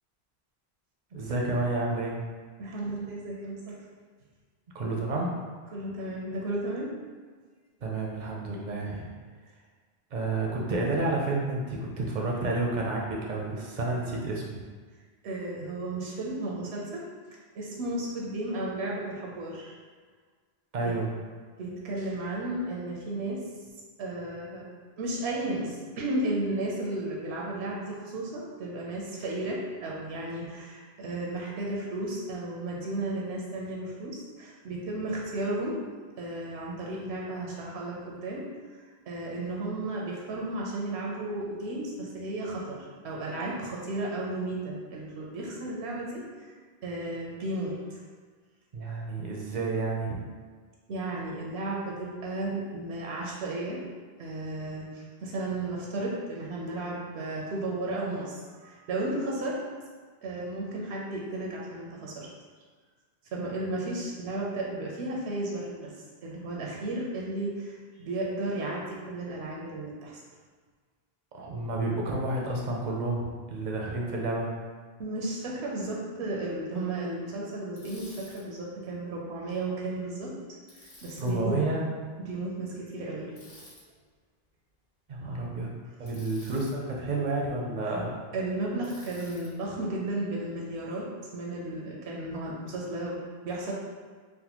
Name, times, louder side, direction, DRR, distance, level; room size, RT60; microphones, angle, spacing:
voice 1, 1.1-2.2 4.7-5.4 7.8-9.1 10.1-14.6 20.7-21.1 48.7-50.2 71.3-74.5 81.2-81.8 85.1-85.7 86.0-88.2, right 2 dB, 55° right, -2 dB, 0.5 m, -30 dB
voice 2, 2.6-3.8 5.7-7.0 15.2-17.1 17.5-19.8 20.8-21.0 21.6-23.5 24.0-24.7 25.0-35.8 36.2-46.3 46.8-48.0 50.9-53.8 54.2-59.7 60.2-62.3 63.3-65.9 66.2-70.2 75.0-80.3 80.7-81.6 82.2-83.5 88.3-93.7, right 2 dB, 85° right, -3 dB, 0.9 m, -34 dB
Bicycle, 77.8-78.4 80.7-81.3 83.4-83.8 86.1-86.7 88.8-89.5, left 1 dB, 50° left, 0.9 m, -51 dB
3.4 x 2.1 x 2.9 m, 1.5 s
omnidirectional pair, 1.1 m